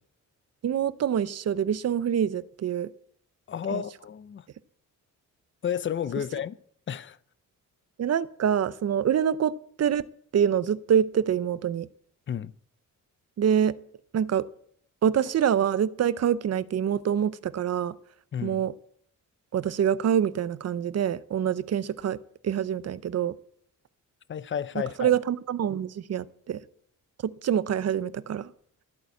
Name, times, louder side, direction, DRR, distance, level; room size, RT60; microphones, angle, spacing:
voice 1, 0.6-2.9 3.7-3.8 8.0-10.1 10.3-11.9 13.4-13.8 14.1-14.5 15.0-18.0 18.4-18.7 19.5-23.3 25.0-26.6 27.2-28.5, right 9 dB, 50° right, 0.6 m, -26 dB
voice 2, 3.5-4.5 5.6-6.5 6.9-7.2 12.3-12.5 18.3-18.6 24.3-25.1, left 8 dB, 35° left, 0.5 m, -31 dB
14.0 x 8.6 x 8.2 m
wide cardioid pair, 140°, 32 cm